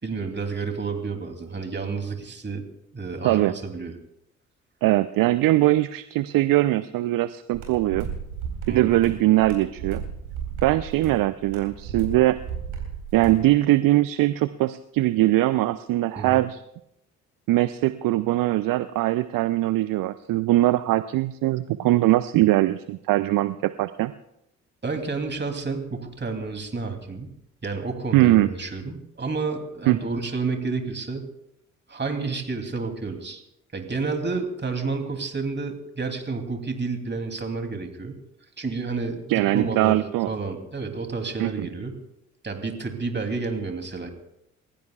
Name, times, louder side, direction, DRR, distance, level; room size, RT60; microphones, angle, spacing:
voice 1, 0.0-2.6 2.9-3.9 8.7-8.9 16.2-16.4 24.8-27.3 27.6-31.3 31.9-33.4 33.7-38.2 38.6-42.0 42.4-44.1, right 4 dB, 25° right, 4 dB, 3.0 m, -30 dB
voice 2, 4.8-8.1 8.7-10.0 10.6-12.4 13.1-16.6 17.5-24.1 28.1-28.5 29.9-30.0 39.3-40.3 41.4-41.7, right 16 dB, 60° right, 14 dB, 0.6 m, -21 dB
sound 1, 7.5-13.4, right 7 dB, 80° right, 4.3 m, -34 dB
29.0 x 15.5 x 2.4 m, 0.81 s
hypercardioid pair, 45°, 39 cm